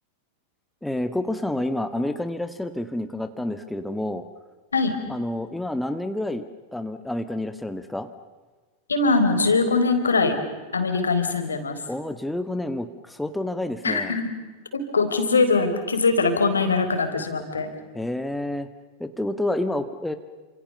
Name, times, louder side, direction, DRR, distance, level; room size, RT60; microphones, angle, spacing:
voice 1, 0.8-4.2 5.1-6.4 6.7-8.1 11.9-14.2 17.9-18.7 19.0-20.1, left 1 dB, 5° left, 9 dB, 1.7 m, -29 dB
voice 2, 8.9-10.4 10.7-11.8 13.8-14.3 14.7-17.7, left 3 dB, 75° left, 7 dB, 4.3 m, -22 dB
29.5 x 27.0 x 6.9 m, 1.3 s
figure-of-eight pair, 90°, 0 cm